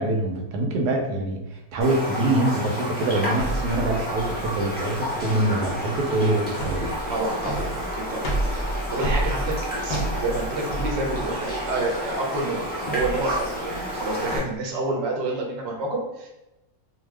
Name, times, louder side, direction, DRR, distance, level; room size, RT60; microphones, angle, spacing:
voice 1, 0.0-6.8, right 1 dB, 90° right, 2 dB, 1.2 m, -24 dB
Raindrop, 1.8-14.4, equal, 15° left, 0.4 m, -31 dB
sound 1, 3.4-14.5, right 1 dB, 60° left, 0.6 m, -31 dB
voice 2, 7.1-8.3 8.7-16.3, right 2 dB, 55° right, 0 dB, 0.8 m, -29 dB
2.7 x 2.3 x 3.3 m, 0.93 s
omnidirectional pair, 1.7 m